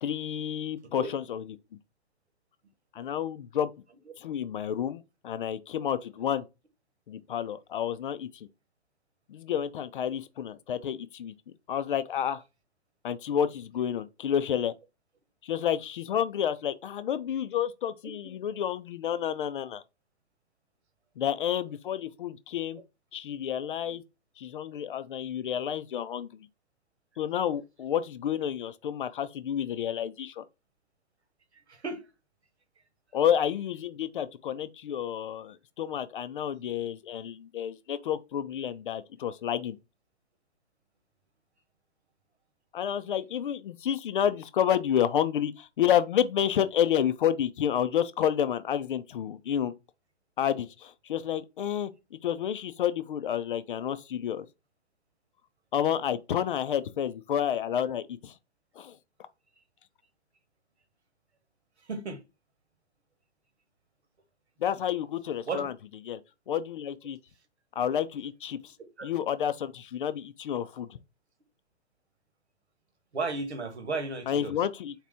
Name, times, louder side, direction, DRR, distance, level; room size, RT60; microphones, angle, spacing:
voice 1, 0.0-1.6 2.9-3.7 4.2-6.4 7.1-8.5 9.3-11.3 11.7-12.4 13.0-14.7 15.4-19.8 21.2-22.8 23.1-24.0 24.4-26.5 27.2-30.5 33.1-39.8 42.7-49.7 50.4-54.5 55.7-58.3 58.8-59.0 64.6-65.7 66.0-66.2 66.5-67.2 67.8-68.7 69.0-71.0 74.3-74.9, left 9 dB, 50° left, 0.5 m, -30 dB
voice 2, 31.7-32.1 61.8-62.2 65.5-65.7 69.0-69.1 73.1-74.5, right 3 dB, 80° right, 1.3 m, -34 dB
4.0 x 2.9 x 3.4 m
figure-of-eight pair, 125°, 33 cm